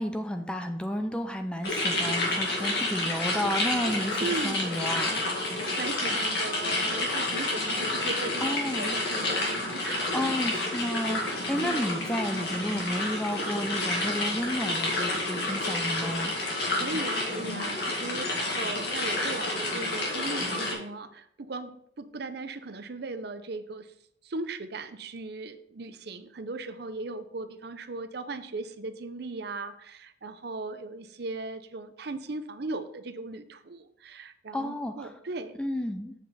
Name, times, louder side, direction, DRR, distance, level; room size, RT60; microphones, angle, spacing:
voice 1, 0.0-5.2 8.4-9.0 9.8-9.9 10.1-16.3 34.5-35.1 35.6-36.1, equal, 5° left, 6 dB, 0.5 m, -32 dB
sound 1, 1.6-20.7, left 2 dB, 60° left, 2.1 m, -29 dB
voice 2, 4.2-4.7 5.5-10.1 11.6-11.9 16.7-23.9 24.2-35.6, right 3 dB, 55° right, 10 dB, 0.6 m, -38 dB
7.6 x 5.4 x 4.1 m, 0.70 s
head